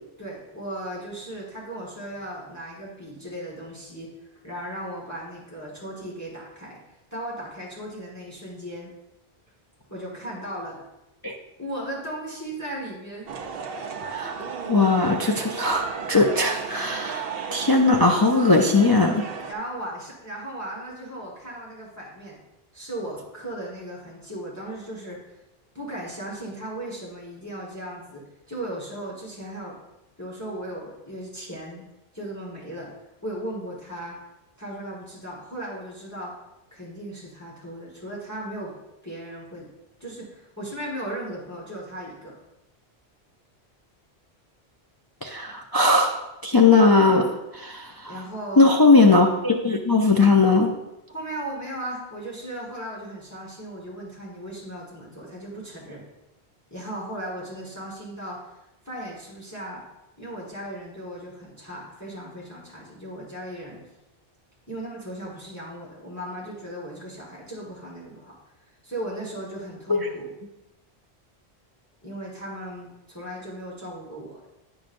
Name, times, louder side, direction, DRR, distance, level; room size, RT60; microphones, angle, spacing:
voice 1, 0.2-4.1 4.4-6.8 7.1-8.9 9.9-10.8 11.6-13.3 19.5-22.4 22.7-25.2 25.7-29.7 30.2-31.8 32.1-32.9 33.2-34.2 34.6-36.3 36.7-38.7 39.0-39.7 40.0-42.3 48.1-48.7 51.1-56.0 56.7-58.5 58.8-59.8 60.2-63.8 64.7-68.4 68.8-70.3 72.0-74.5, right 1 dB, 15° left, -5 dB, 1.4 m, -36 dB
sound 1, 13.3-19.5, right 6 dB, 70° right, 0.9 m, -34 dB
voice 2, 14.0-14.3 14.7-19.3 45.2-47.3 47.5-48.1 48.6-50.7 69.9-70.1, left 3 dB, 40° left, 1 dB, 0.3 m, -19 dB
8.8 x 6.2 x 2.5 m, 0.92 s
omnidirectional pair, 1.1 m